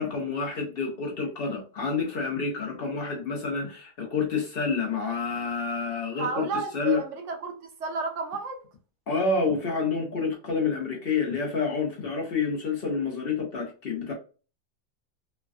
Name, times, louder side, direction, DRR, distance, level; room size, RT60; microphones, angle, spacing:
voice 1, 0.0-7.0 9.1-14.1, left 4 dB, 55° left, 0.8 m, -28 dB
voice 2, 6.2-8.6, right 4 dB, 70° right, 1.0 m, -32 dB
3.2 x 2.2 x 2.4 m
omnidirectional pair, 1.4 m